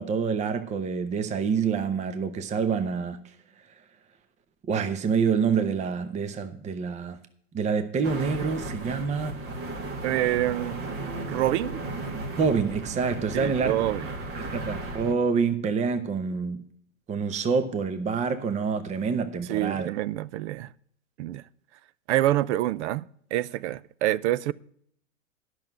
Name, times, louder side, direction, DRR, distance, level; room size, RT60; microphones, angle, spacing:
voice 1, 0.0-3.2 4.7-7.2 7.5-9.4 12.4-13.9 14.4-16.7 17.1-19.9, right 5 dB, 15° right, 0.8 m, -27 dB
sound 1, 8.0-15.1, right 2 dB, 35° right, 1.6 m, -35 dB
voice 2, 10.0-10.9 11.2-11.8 13.3-14.1 19.5-20.7 21.2-21.4 22.1-24.5, right 14 dB, 60° right, 0.6 m, -27 dB
10.5 x 6.2 x 6.5 m
hypercardioid pair, 115°, 40 cm